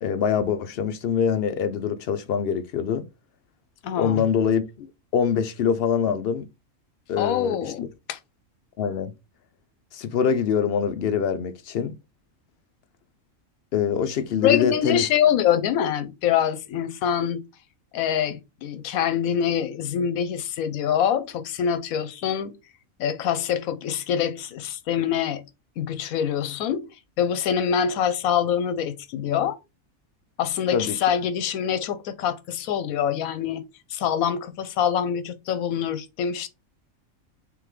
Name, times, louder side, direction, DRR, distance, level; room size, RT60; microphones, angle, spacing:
voice 1, 0.0-3.0 4.0-4.9 5.1-6.5 7.1-7.7 8.8-9.1 9.9-11.9 13.7-15.0 30.7-31.0, left 7 dB, 65° left, 0.6 m, -24 dB
voice 2, 3.8-4.3 7.2-8.2 14.4-17.4 17.9-22.5 23.0-25.4 25.8-26.9 27.2-29.6 30.4-33.6 33.9-36.5, left 9 dB, 80° left, 1.1 m, -25 dB
3.6 x 3.4 x 3.1 m
omnidirectional pair, 1.5 m